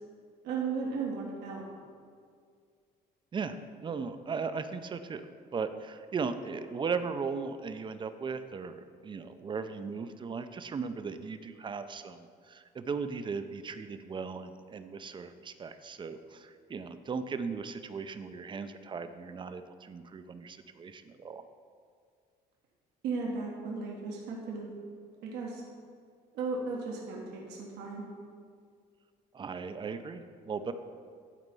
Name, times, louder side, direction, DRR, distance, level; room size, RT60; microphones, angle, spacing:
voice 1, 0.4-1.6 23.0-24.7 25.2-25.6 26.3-28.0, right 4 dB, 90° right, -2 dB, 1.5 m, -35 dB
voice 2, 3.8-5.2 5.5-21.4 29.3-30.7, right 5 dB, 30° right, 10 dB, 0.5 m, -37 dB
11.0 x 4.3 x 5.4 m, 2.1 s
cardioid pair, 110°, 17 cm